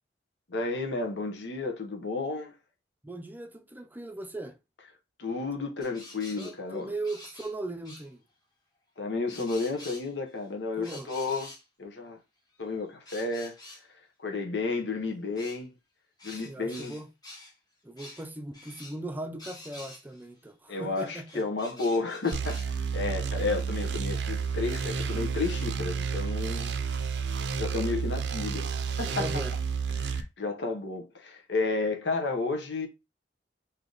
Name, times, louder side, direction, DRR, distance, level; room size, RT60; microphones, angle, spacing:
voice 1, 0.5-2.5 5.2-6.9 9.0-11.5 11.8-12.2 12.6-13.6 14.2-15.7 16.2-17.0 20.7-26.7 27.6-28.7 29.0-29.4 29.9-32.9, left 3 dB, 90° left, 0.9 m, -32 dB
voice 2, 3.0-4.6 6.4-8.2 10.8-11.1 16.4-17.1 17.8-21.4 29.0-29.5, right 2 dB, 10° right, 0.5 m, -38 dB
sound 1, 5.8-7.5 7.8-8.1 9.3-10.4 10.8-11.6 12.6-13.8 15.4-15.6 16.2-17.5 18.0-18.3 18.5-19.0 19.4-20.2 20.9-22.7, left 2 dB, 25° left, 1.2 m, -47 dB
sound 2, 22.3-30.2, right 6 dB, 75° right, 0.5 m, -31 dB
3.3 x 2.8 x 3.8 m
head